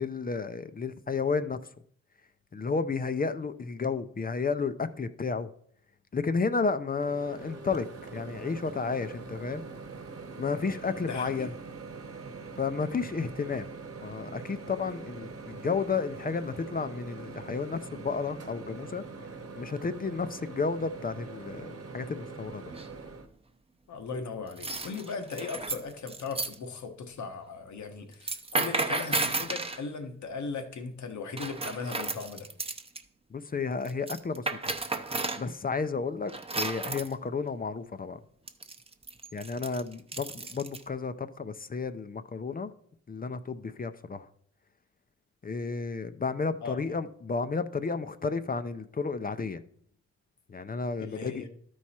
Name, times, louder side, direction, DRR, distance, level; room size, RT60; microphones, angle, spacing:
voice 1, 0.0-1.6 2.5-5.5 6.1-7.9 8.1-9.6 10.4-11.5 12.6-13.7 14.0-19.0 19.6-22.7 33.3-34.4 35.4-38.2 39.3-42.7 43.1-44.3 45.4-49.6 50.5-51.4, left 4 dB, 30° left, 0.5 m, -32 dB
Microwave oven, 7.0-23.3, right 4 dB, 50° right, 1.1 m, -43 dB
voice 2, 11.0-11.5 23.9-32.5 46.6-46.8 51.0-51.5, left 4 dB, 75° left, 1.2 m, -38 dB
sound 1, 22.7-23.1 24.5-26.5 28.1-29.8 31.4-33.0 33.8-35.4 36.3-37.1 38.5-40.8, right 3 dB, 20° right, 0.7 m, -33 dB
12.5 x 4.7 x 4.3 m
cardioid pair, 90°, 29 cm